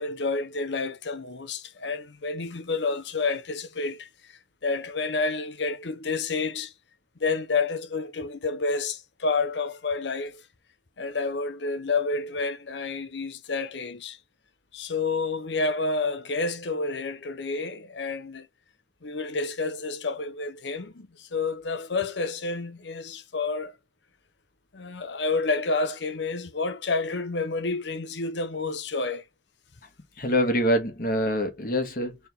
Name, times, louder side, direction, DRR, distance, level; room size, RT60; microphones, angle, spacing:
voice 1, 0.0-6.7 7.2-10.4 11.0-14.2 14.7-18.5 19.0-23.7 24.7-29.2, left 3 dB, 75° left, 0.8 m, -29 dB
voice 2, 30.2-32.2, equal, 50° left, 1.6 m, -25 dB
4.3 x 3.6 x 3.5 m
head